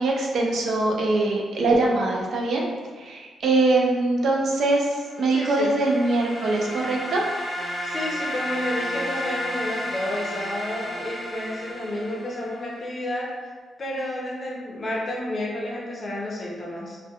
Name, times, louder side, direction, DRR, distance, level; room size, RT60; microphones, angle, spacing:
voice 1, 0.0-2.6 3.0-7.2, right 2 dB, 65° right, -1 dB, 0.4 m, -22 dB
sound 1, 5.0-12.7, equal, 5° right, 0.5 m, -32 dB
voice 2, 5.3-5.7 7.8-13.3 13.8-17.0, left 1 dB, 35° left, -3 dB, 0.6 m, -30 dB
2.3 x 2.1 x 2.7 m, 1.5 s
cardioid pair, 120°, 0 cm